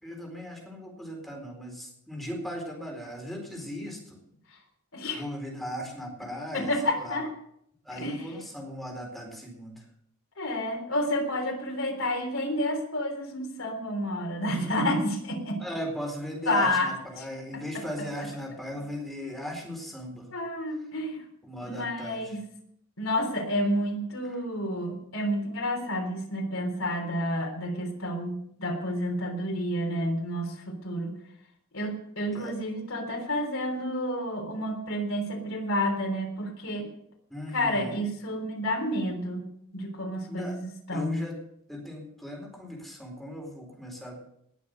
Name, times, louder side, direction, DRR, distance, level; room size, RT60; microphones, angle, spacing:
voice 1, 0.0-4.2 5.1-7.2 7.8-9.9 15.6-20.3 21.4-22.4 24.9-25.0 32.3-32.5 37.3-38.1 40.3-40.6 40.9-41.4 41.7-44.2, equal, ahead, 0 dB, 4.2 m, -38 dB
voice 2, 6.5-7.3 8.0-8.2 10.4-15.6 16.5-16.9 17.5-17.6 20.3-21.2 21.6-22.4 23.0-31.1 31.7-36.9 37.5-39.4 39.7-41.2, left 1 dB, 90° left, 2 dB, 3.5 m, -30 dB
20.0 x 7.0 x 6.6 m, 0.71 s
head